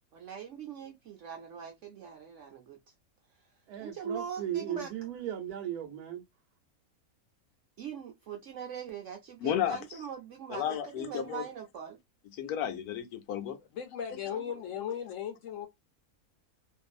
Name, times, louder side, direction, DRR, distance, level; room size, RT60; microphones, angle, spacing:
voice 1, 0.1-2.8 3.4-3.5 3.8-4.9 7.8-12.0 14.3-14.6, right 7 dB, 65° right, 0.8 m, -42 dB
voice 2, 3.7-6.2, right 11 dB, 85° right, 1.1 m, -37 dB
voice 3, 9.4-9.8 10.5-11.4 12.4-13.6, left 10 dB, 85° left, 1.1 m, -32 dB
voice 4, 13.7-15.7, left 8 dB, 65° left, 0.9 m, -37 dB
2.6 x 2.5 x 2.3 m
omnidirectional pair, 1.5 m